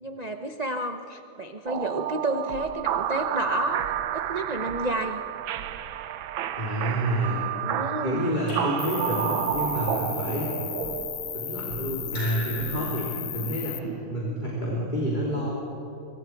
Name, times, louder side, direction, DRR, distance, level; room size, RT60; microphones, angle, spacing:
voice 1, 0.0-3.8 4.1-5.2 7.6-8.3, right 1 dB, 70° right, 6 dB, 0.3 m, -30 dB
sound 1, 1.7-14.8, right 11 dB, 85° right, 1.5 m, -32 dB
voice 2, 6.6-7.4 8.0-10.6 11.3-15.5, right 1 dB, 25° left, -5 dB, 3.2 m, -29 dB
Raindrop / Drip, 8.5-9.7 12.1-13.4, equal, 50° left, 6.4 m, -41 dB
Cricket, 8.8-13.8, left 12 dB, 70° left, 1.2 m, -35 dB
25.0 x 24.0 x 4.6 m, 2.8 s
omnidirectional pair, 2.1 m